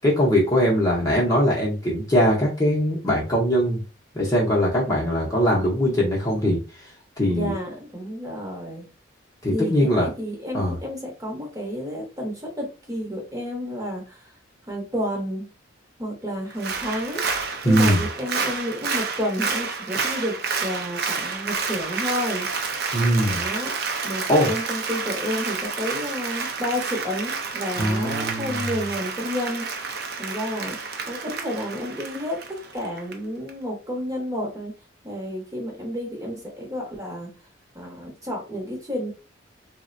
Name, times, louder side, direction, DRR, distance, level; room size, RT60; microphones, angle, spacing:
voice 1, 0.0-3.8 4.1-6.9 7.2-7.5 9.4-10.1 10.5-10.8 17.6-18.0 22.9-23.4 24.3-24.5 27.8-28.7, equal, 15° left, -4 dB, 0.7 m, -21 dB
voice 2, 7.3-8.9 9.5-14.3 14.7-15.5 16.0-17.2 17.6-20.3 20.6-22.5 23.3-23.7 24.0-29.7 30.2-30.8 31.1-34.7 35.0-37.3 37.7-39.1, equal, 15° right, -1 dB, 0.8 m, -30 dB
Applause, 16.5-33.1 33.5-33.6, right 5 dB, 50° right, 0.5 m, -29 dB
3.6 x 2.1 x 2.5 m, 0.31 s
head